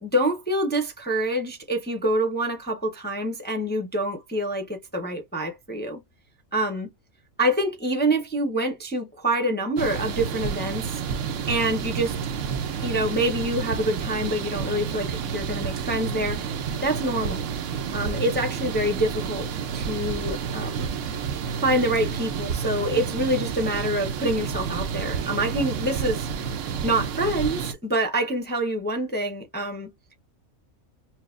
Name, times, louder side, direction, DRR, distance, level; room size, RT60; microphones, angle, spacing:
voice 1, 0.0-6.0 6.5-6.9 7.4-11.0 11.5-12.1 12.8-16.5 16.8-17.4 17.9-19.5 19.7-20.9 21.6-26.3 26.8-29.9, right 1 dB, 10° left, 0.6 m, -26 dB
sound 1, 9.8-27.7, right 7 dB, 70° right, 1.0 m, -30 dB
6.1 x 2.0 x 2.4 m
omnidirectional pair, 1.4 m